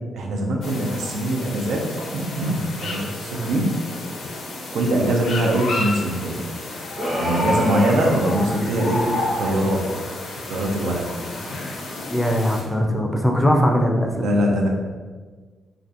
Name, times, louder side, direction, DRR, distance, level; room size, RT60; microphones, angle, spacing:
voice 1, 0.1-3.8 4.7-6.4 7.2-10.1 10.5-11.1 14.1-14.7, right 1 dB, 75° right, 1 dB, 0.4 m, -23 dB
sound 1, 0.6-12.6, left 2 dB, 75° left, 0.5 m, -31 dB
sound 2, 6.9-9.1, right 1 dB, 40° right, 1.0 m, -27 dB
voice 2, 12.1-14.2, equal, 10° left, 2 dB, 0.4 m, -20 dB
2.5 x 2.2 x 2.4 m, 1.4 s
supercardioid pair, 55°, 0 cm